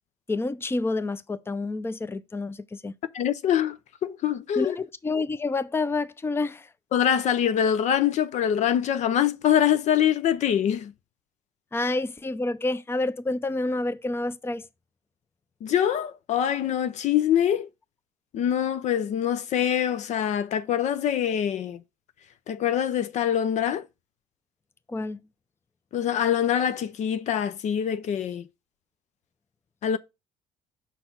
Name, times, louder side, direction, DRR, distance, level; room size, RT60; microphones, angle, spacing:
voice 1, 0.3-2.9 4.6-6.7 11.7-14.7 24.9-25.2, left 2 dB, 15° left, 0.6 m, -28 dB
voice 2, 3.1-4.8 6.9-10.9 15.6-17.7 18.3-21.8 22.5-23.8 25.9-28.5 29.8-30.0, left 9 dB, 60° left, 0.6 m, -24 dB
6.0 x 4.3 x 5.3 m
hypercardioid pair, 65°, 14 cm